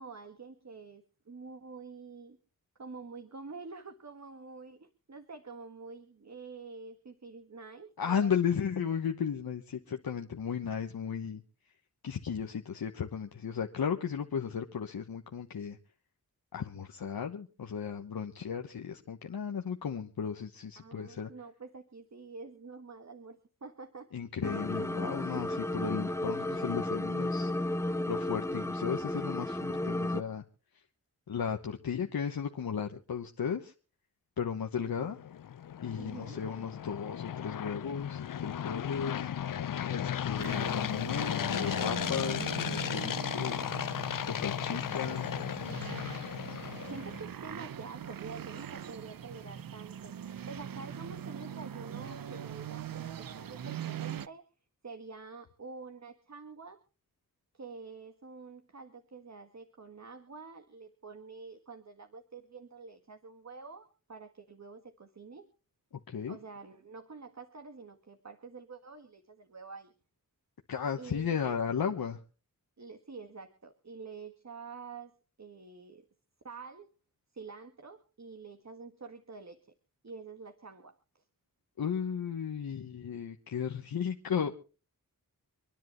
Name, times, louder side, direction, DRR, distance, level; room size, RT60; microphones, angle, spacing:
voice 1, 0.0-2.4 2.8-8.5 20.8-24.1 35.0-35.1 36.0-36.4 44.7-45.5 46.9-54.4 54.8-56.8 57.5-65.5 66.3-69.9 71.0-71.6 72.8-76.1 76.4-76.9 77.3-79.6 80.0-81.0, right 4 dB, 50° right, 7 dB, 1.7 m, -47 dB
voice 2, 8.0-11.4 12.0-15.8 16.5-21.3 24.1-27.5 28.1-30.4 31.3-33.7 34.4-35.2 35.8-39.3 39.9-43.7 44.3-45.3 66.1-66.4 70.7-72.2 81.8-84.5, left 7 dB, 90° left, 4 dB, 1.2 m, -35 dB
sound 1, 24.4-30.2, left 1 dB, 10° left, 0.9 m, -33 dB
sound 2, 34.9-47.2, left 9 dB, 65° left, 0.6 m, -35 dB
sound 3, 40.4-54.3, right 9 dB, 75° right, 0.7 m, -42 dB
27.0 x 10.5 x 3.1 m, 0.36 s
wide cardioid pair, 65°, 35 cm